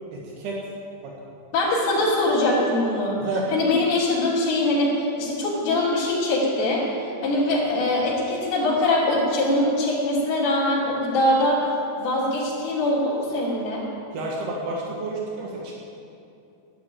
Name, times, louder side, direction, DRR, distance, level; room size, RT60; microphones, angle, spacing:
voice 1, 0.1-0.6 1.0-1.1 3.2-3.5 14.1-15.7, right 2 dB, 80° right, -3 dB, 3.7 m, -30 dB
voice 2, 1.5-3.2 3.5-6.8 7.2-11.6 12.0-13.9, left 1 dB, 70° left, -7 dB, 5.1 m, -22 dB
11.0 x 11.0 x 9.0 m, 2.7 s
omnidirectional pair, 4.7 m